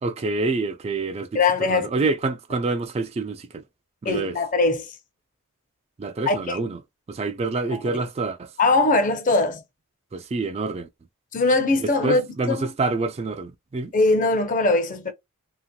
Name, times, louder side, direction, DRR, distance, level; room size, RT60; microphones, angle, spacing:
voice 1, 0.0-1.4 1.7-3.6 4.0-4.4 6.0-6.8 7.1-8.5 10.1-10.9 11.8-13.9, right 3 dB, 30° right, 0.3 m, -27 dB
voice 2, 1.3-1.9 4.0-4.9 6.3-6.4 7.7-8.0 8.6-9.6 11.3-12.2 12.5-12.7 13.9-15.1, left 3 dB, 40° left, 0.7 m, -21 dB
2.9 x 2.8 x 2.2 m
head